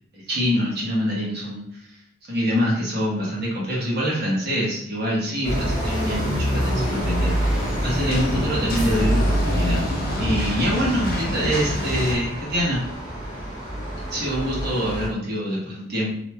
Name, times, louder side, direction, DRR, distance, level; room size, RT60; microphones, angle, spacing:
voice 1, 0.1-1.6 2.3-9.9 10.2-12.8 14.1-16.1, equal, 55° right, -5 dB, 1.2 m, -25 dB
sound 1, 5.4-15.1, equal, 15° left, 1.3 m, -27 dB
sound 2, 6.5-12.2, left 1 dB, 45° left, 0.6 m, -28 dB
2.9 x 2.7 x 2.3 m, 0.70 s
head